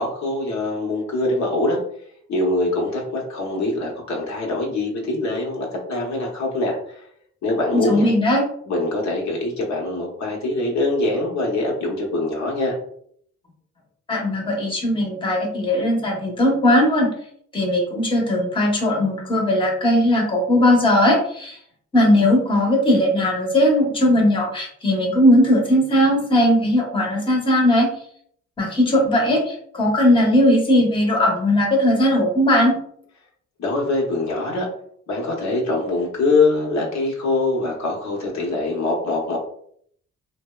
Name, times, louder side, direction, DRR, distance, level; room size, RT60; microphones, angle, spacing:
voice 1, 0.0-1.8 2.3-7.0 7.4-8.1 8.7-12.8 33.6-34.7 35.1-39.4, left 2 dB, 65° left, -1 dB, 0.8 m, -23 dB
voice 2, 7.7-8.4 14.1-17.1 17.5-21.6 21.9-27.9 28.6-32.7, left 1 dB, 15° left, -1 dB, 0.8 m, -18 dB
2.7 x 2.0 x 2.2 m, 0.64 s
cardioid pair, 90°, 30 cm